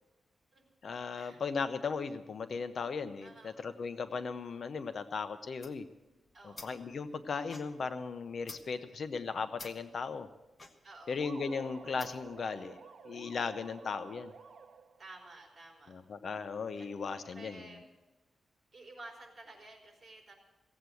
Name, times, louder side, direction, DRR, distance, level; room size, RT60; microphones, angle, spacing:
voice 1, 0.8-5.8 6.4-10.3 11.1-12.8 13.0-14.3 15.9-17.7, left 5 dB, 50° left, 10 dB, 0.7 m, -37 dB
voice 2, 3.2-3.6 6.3-6.8 8.6-8.9 10.8-11.2 15.0-16.0 16.8-16.9 17.3-17.8 18.7-20.3, right 2 dB, 40° right, 0 dB, 3.8 m, -52 dB
sound 1, 5.6-12.4, left 2 dB, 25° left, 1.2 m, -53 dB
sound 2, 11.2-15.1, right 5 dB, 60° right, 1.0 m, -52 dB
16.5 x 8.2 x 7.7 m, 1.1 s
wide cardioid pair, 145°, 0 cm